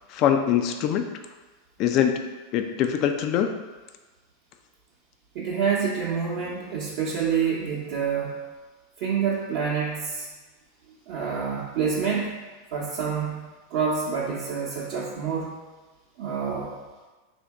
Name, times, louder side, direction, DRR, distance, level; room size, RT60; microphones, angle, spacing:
voice 1, 0.1-1.1 1.8-2.2 2.5-3.6, left 9 dB, 45° left, 6 dB, 0.3 m, -23 dB
voice 2, 5.3-8.3 9.0-10.3 11.1-12.3 12.7-13.4 13.7-15.6 16.2-16.7, right 6 dB, 55° right, -6 dB, 0.7 m, -27 dB
3.4 x 2.6 x 4.6 m, 1.3 s
hypercardioid pair, 95°, 0 cm